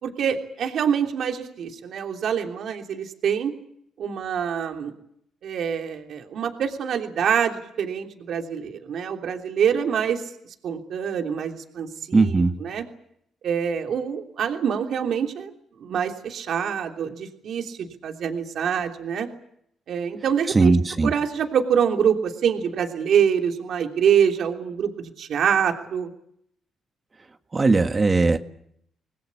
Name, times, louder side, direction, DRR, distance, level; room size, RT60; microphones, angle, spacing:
voice 1, 0.0-3.5 4.0-4.9 5.4-10.2 10.6-12.8 13.4-15.5 15.8-19.3 19.9-20.7 21.0-26.1, right 8 dB, 65° right, 3 dB, 3.1 m, -25 dB
voice 2, 12.1-12.5 20.5-21.1 27.5-28.4, right 3 dB, 30° right, 7 dB, 1.8 m, -18 dB
26.5 x 20.0 x 8.5 m, 0.70 s
cardioid pair, 90°, 0 cm